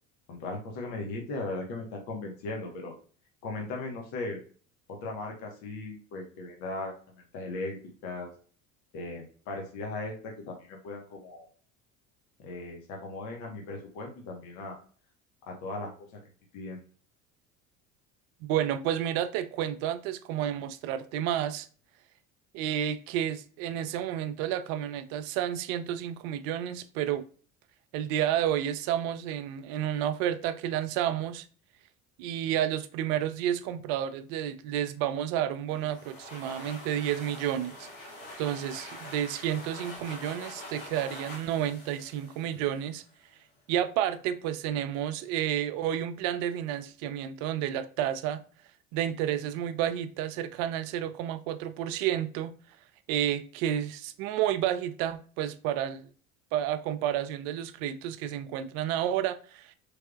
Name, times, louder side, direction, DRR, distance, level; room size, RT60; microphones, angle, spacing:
voice 1, 0.3-2.9 3.4-4.4 4.9-7.8 8.0-8.3 8.9-11.5 12.4-14.8 15.5-16.1 16.5-16.8, left 2 dB, 65° left, 1.2 m, -38 dB
voice 2, 18.4-21.7 22.5-27.2 27.9-31.4 32.2-37.9 38.4-43.0 43.7-48.4 48.9-52.5 53.1-56.1 56.5-59.7, right 11 dB, 65° right, 0.5 m, -30 dB
sound 1, 35.7-43.2, left 1 dB, 90° left, 1.2 m, -45 dB
3.4 x 3.3 x 2.3 m
hypercardioid pair, 70°, 39 cm